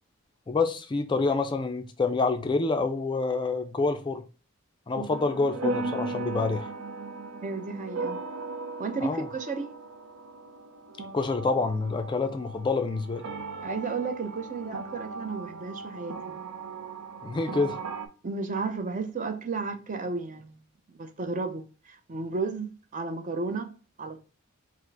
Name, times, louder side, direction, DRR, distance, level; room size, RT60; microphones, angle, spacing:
voice 1, 0.5-4.2 4.9-6.7 9.0-9.3 11.1-13.2 17.2-17.8, left 3 dB, 20° left, 0.3 m, -27 dB
sound 1, 5.1-18.1, right 3 dB, 85° right, 0.6 m, -37 dB
voice 2, 7.4-8.2 8.8-9.8 13.6-16.4 18.2-20.6 20.9-23.7 24.0-24.2, right 4 dB, 40° right, 0.5 m, -33 dB
4.8 x 2.0 x 3.3 m
head